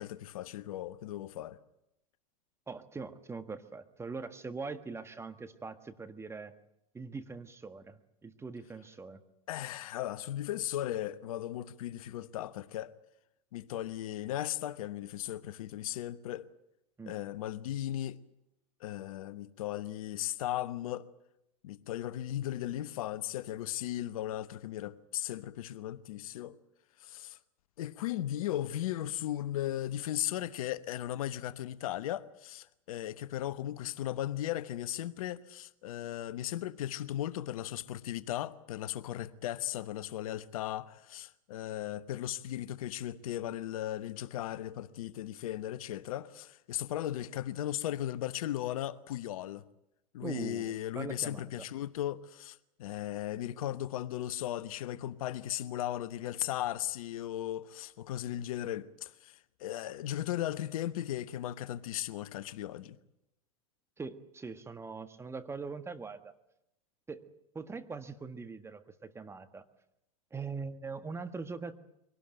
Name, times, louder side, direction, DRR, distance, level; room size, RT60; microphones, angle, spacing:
voice 1, 0.0-1.6 9.5-12.9 13.5-16.5 17.1-18.2 18.8-21.1 21.6-26.6 27.0-27.4 27.8-49.6 50.1-63.0, left 13 dB, 75° left, 1.1 m, -37 dB
voice 2, 2.7-6.5 6.9-9.2 17.0-17.2 50.2-51.7 64.0-66.3 67.1-69.6 70.3-71.7, right 4 dB, 15° right, 1.6 m, -42 dB
23.5 x 18.0 x 9.1 m
hypercardioid pair, 105°, 18 cm